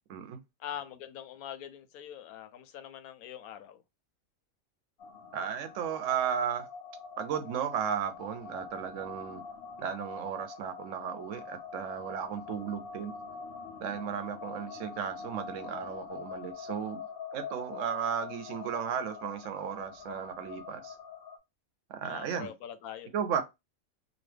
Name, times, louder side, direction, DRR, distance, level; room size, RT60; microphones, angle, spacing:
voice 1, 0.6-3.8 22.0-23.1, left 10 dB, 85° left, 1.0 m, -43 dB
sound 1, 5.0-21.4, left 5 dB, 60° left, 0.6 m, -44 dB
voice 2, 5.3-6.7 7.2-9.4 9.8-13.1 13.8-17.1 17.3-20.9 21.9-22.5 23.1-23.4, right 8 dB, 70° right, 0.8 m, -34 dB
3.0 x 2.2 x 3.3 m
omnidirectional pair, 1.5 m